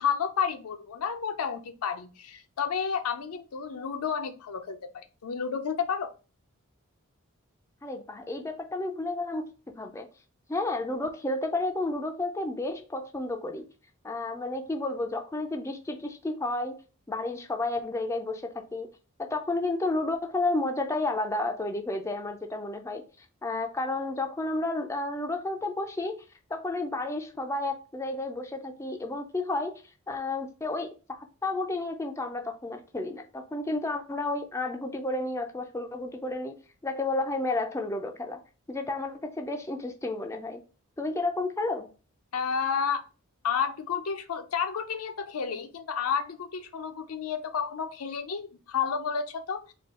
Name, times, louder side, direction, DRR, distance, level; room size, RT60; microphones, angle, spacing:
voice 1, 0.0-6.1 42.3-43.1 43.4-49.7, left 7 dB, 80° left, 0.5 m, -31 dB
voice 2, 7.8-9.5 9.8-10.1 10.5-13.6 14.0-16.8 17.1-18.9 19.2-26.2 26.5-36.6 36.8-38.4 38.7-40.6 41.0-41.9, left 2 dB, 15° left, 0.3 m, -31 dB
4.2 x 2.3 x 3.6 m
head